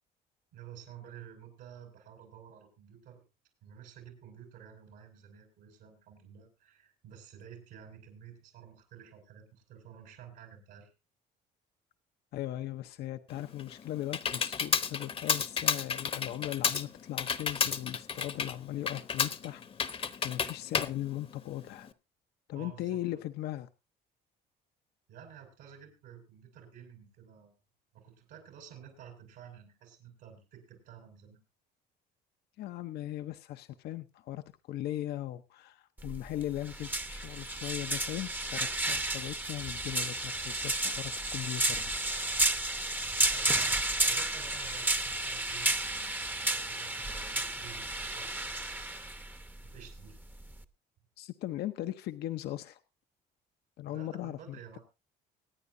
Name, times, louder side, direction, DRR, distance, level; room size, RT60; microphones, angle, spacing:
voice 1, 0.5-3.2 3.6-10.9 22.5-23.2 25.1-27.5 27.9-31.4 43.2-48.8 49.2-50.2 53.9-54.8, right 8 dB, 85° right, 3 dB, 5.3 m, -52 dB
voice 2, 12.3-19.6 19.9-21.9 22.5-23.7 32.6-41.9 51.2-52.8 53.8-54.8, left 14 dB, 75° left, 9 dB, 0.7 m, -38 dB
Computer keyboard, 13.3-21.9, left 6 dB, 35° left, 0.9 m, -32 dB
sound 1, 36.0-50.6, right 2 dB, 10° right, 0.8 m, -32 dB
25.0 x 9.3 x 2.6 m, 0.26 s
cardioid pair, 110°, 17 cm